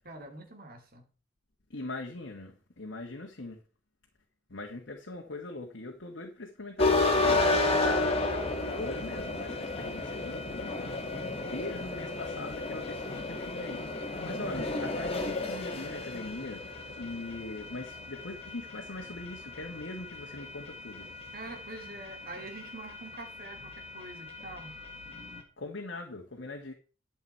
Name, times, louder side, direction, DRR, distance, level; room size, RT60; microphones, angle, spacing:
voice 1, 0.0-1.1 21.3-24.7, right 2 dB, 50° right, 2.6 m, -45 dB
voice 2, 1.7-3.6 4.5-7.5 8.7-16.7 17.0-21.1 25.6-26.7, left 2 dB, 75° left, 1.5 m, -41 dB
sound 1, 6.8-25.4, left 2 dB, 30° left, 2.1 m, -33 dB
11.5 x 7.2 x 4.5 m
head